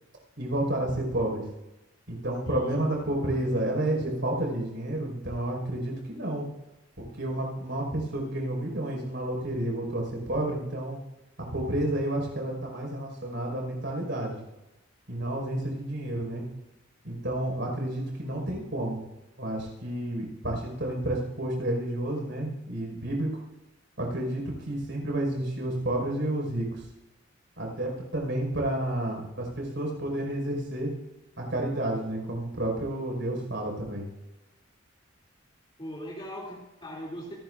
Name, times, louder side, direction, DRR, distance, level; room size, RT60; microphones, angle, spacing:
voice 1, 0.4-1.4 2.1-6.4 7.0-11.0 11.5-14.4 15.1-16.4 17.0-19.0 19.4-23.3 24.0-26.7 27.6-30.9 31.4-34.1, right 1 dB, 65° right, 0 dB, 5.5 m, -30 dB
voice 2, 2.4-3.0 3.3-3.5 35.8-37.3, equal, 25° left, -5 dB, 2.9 m, -40 dB
27.5 x 13.0 x 2.6 m, 0.95 s
head